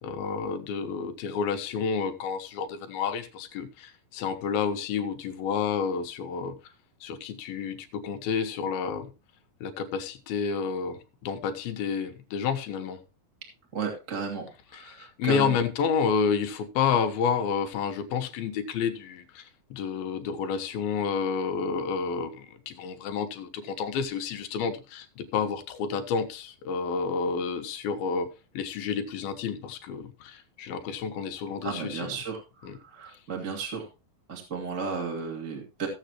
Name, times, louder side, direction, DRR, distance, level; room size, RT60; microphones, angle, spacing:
voice 1, 0.0-6.6 7.0-9.1 9.6-13.0 14.7-28.3 28.5-32.1 32.6-32.8 33.1-33.2, left 6 dB, 85° left, 3.0 m, -30 dB
voice 2, 13.7-15.6 31.6-33.9 34.3-35.9, right 5 dB, 25° right, 2.4 m, -34 dB
15.5 x 8.0 x 3.0 m
omnidirectional pair, 4.2 m